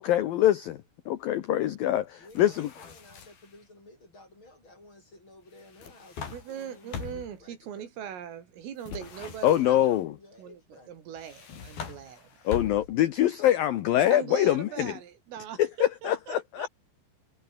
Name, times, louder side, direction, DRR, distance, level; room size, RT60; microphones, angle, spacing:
voice 1, 0.0-2.7 9.4-10.2 12.5-14.9 15.6-16.7, left 12 dB, 80° left, 2.0 m, -24 dB
voice 2, 2.2-7.9 9.5-10.9, left 2 dB, 25° left, 7.9 m, -54 dB
sound 1, 2.3-3.6 5.6-7.4 8.8-10.0 11.2-13.1, left 6 dB, 50° left, 5.9 m, -42 dB
voice 3, 6.3-9.9 10.4-10.6 10.9-12.5 14.1-16.7, right 9 dB, 85° right, 5.9 m, -41 dB
omnidirectional pair, 5.7 m